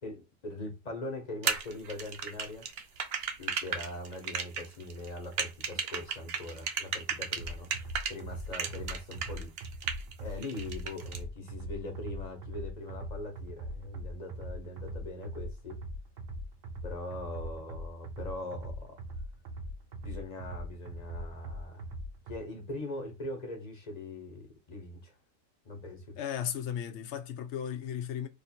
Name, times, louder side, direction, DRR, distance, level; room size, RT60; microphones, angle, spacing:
voice 1, 0.0-2.7 3.4-9.5 10.2-15.8 16.8-19.0 20.0-21.8 22.3-25.1 25.6-26.2, left 1 dB, 35° left, 0.9 m, -41 dB
sound 1, 1.4-8.1 8.5-10.1 10.4-11.2, right 6 dB, 60° right, 0.7 m, -34 dB
sound 2, 7.4-22.4, equal, 80° right, 1.1 m, -41 dB
voice 2, 26.2-28.3, left 9 dB, 65° left, 0.8 m, -35 dB
2.8 x 2.6 x 4.2 m
omnidirectional pair, 1.4 m